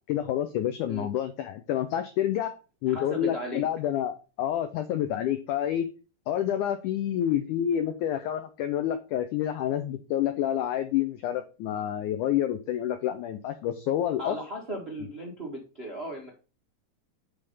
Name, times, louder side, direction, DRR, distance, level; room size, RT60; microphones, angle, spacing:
voice 1, 0.1-2.5 2.8-5.9 6.3-14.4, left 11 dB, 90° left, 9 dB, 1.7 m, -28 dB
voice 2, 2.9-3.6 14.2-16.3, equal, 80° right, -1 dB, 0.5 m, -36 dB
10.0 x 3.5 x 5.5 m, 0.33 s
omnidirectional pair, 4.3 m